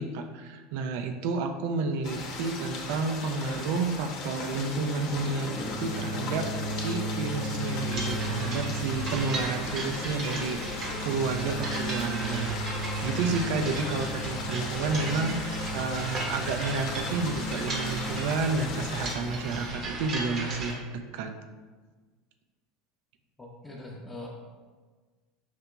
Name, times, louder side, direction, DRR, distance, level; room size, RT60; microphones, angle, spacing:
voice 1, 0.0-12.5 13.0-21.3, right 4 dB, 65° right, 6 dB, 0.4 m, -31 dB
sound 1, 2.0-19.1, left 3 dB, 55° left, 0.8 m, -38 dB
sound 2, 5.5-19.7, right 1 dB, 85° left, 0.5 m, -36 dB
sound 3, 7.8-20.7, right 2 dB, 45° right, 0.9 m, -37 dB
voice 2, 23.4-24.3, left 2 dB, 15° left, -5 dB, 0.7 m, -42 dB
5.8 x 2.8 x 2.2 m, 1.4 s
hypercardioid pair, 80°, 0 cm